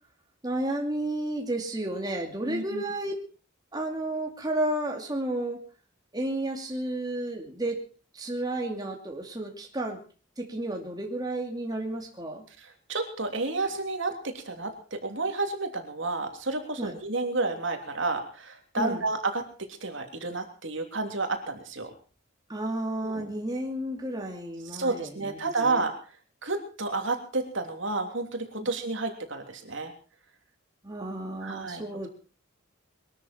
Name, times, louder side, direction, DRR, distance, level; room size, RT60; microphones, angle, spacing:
voice 1, 0.4-3.1 3.7-5.6 6.1-7.8 8.1-10.0 10.4-12.4 16.8-16.9 18.8-19.0 22.5-25.8 28.6-28.7 30.8-32.1, right 1 dB, 20° right, 1 dB, 2.5 m, -32 dB
voice 2, 2.4-2.8 12.6-19.5 19.8-21.9 23.0-23.3 24.6-25.9 26.4-29.9 31.4-32.1, right 3 dB, 65° right, 5 dB, 3.1 m, -31 dB
22.5 x 13.0 x 4.4 m, 0.38 s
head